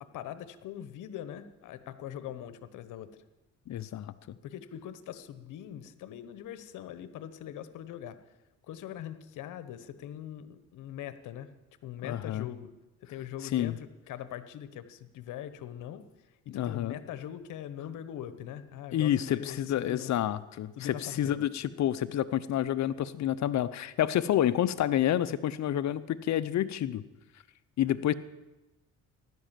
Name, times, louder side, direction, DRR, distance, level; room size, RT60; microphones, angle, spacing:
voice 1, 0.0-3.2 4.4-8.2 8.7-11.5 11.8-12.7 13.1-16.0 16.4-20.1 20.8-21.5, left 10 dB, 85° left, 13 dB, 1.1 m, -42 dB
voice 2, 3.7-4.1 12.0-12.5 13.5-13.8 16.5-17.0 18.9-27.0 27.8-28.1, left 11 dB, 65° left, 13 dB, 0.8 m, -29 dB
15.5 x 11.5 x 7.5 m, 1.0 s
cardioid pair, 90°, 30 cm